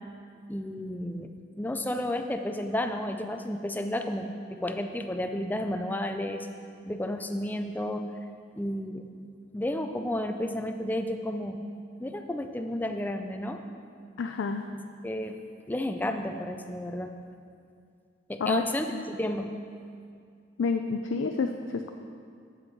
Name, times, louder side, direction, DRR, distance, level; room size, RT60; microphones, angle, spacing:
voice 1, 0.5-1.3 1.6-6.5 6.8-8.0 8.6-9.1 9.5-11.6 12.0-13.6 14.7-15.4 15.7-17.1 18.3-19.5, left 1 dB, 10° left, 5 dB, 0.4 m, -32 dB
voice 2, 14.2-14.7 18.4-18.6 18.9-19.0 20.6-21.9, left 4 dB, 75° left, 5 dB, 0.4 m, -29 dB
7.8 x 7.4 x 4.6 m, 2.3 s
head